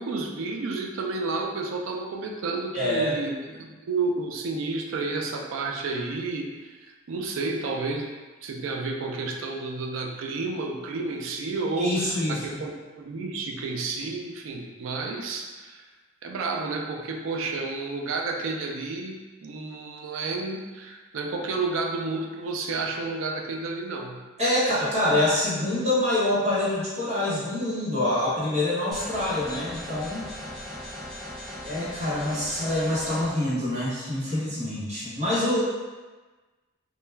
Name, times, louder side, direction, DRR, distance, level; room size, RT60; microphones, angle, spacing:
voice 1, 0.0-8.1 8.4-12.7 13.0-15.8 16.2-24.2, right 3 dB, 80° right, 2 dB, 0.4 m, -31 dB
voice 2, 2.7-3.2 11.8-12.6 24.4-30.3 31.6-35.6, left 1 dB, 35° right, -10 dB, 0.9 m, -26 dB
sound 1, 28.9-33.3, left 1 dB, ahead, 0.4 m, -38 dB
2.2 x 2.2 x 3.2 m, 1.3 s
head